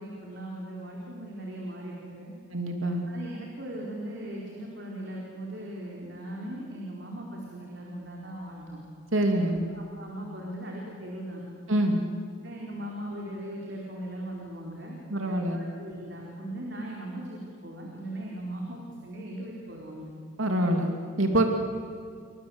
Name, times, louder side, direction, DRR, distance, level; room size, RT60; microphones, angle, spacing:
voice 1, 0.0-2.3 3.1-8.8 9.4-11.4 12.4-15.0 15.3-20.1 21.3-21.5, right 1 dB, 55° right, -2 dB, 4.3 m, -39 dB
voice 2, 2.5-3.0 9.1-9.6 11.7-12.0 15.1-15.6 20.4-21.5, right 1 dB, 85° right, 3 dB, 2.8 m, -25 dB
30.0 x 24.5 x 8.0 m, 2.2 s
head